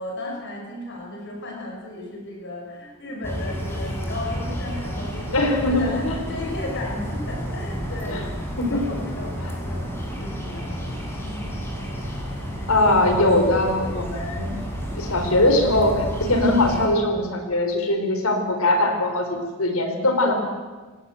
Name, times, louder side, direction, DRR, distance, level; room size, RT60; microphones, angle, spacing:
voice 1, 0.0-8.3 8.6-11.5, left 1 dB, 55° left, 0 dB, 6.2 m, -35 dB
sound 1, 3.2-16.9, equal, 10° left, 6.0 m, -31 dB
voice 2, 5.3-6.2 8.1-8.2 8.6-8.8 9.4-9.5 12.7-14.5 15.0-20.3, left 1 dB, 85° left, 5 dB, 4.6 m, -21 dB
29.0 x 18.5 x 8.0 m, 1.3 s
head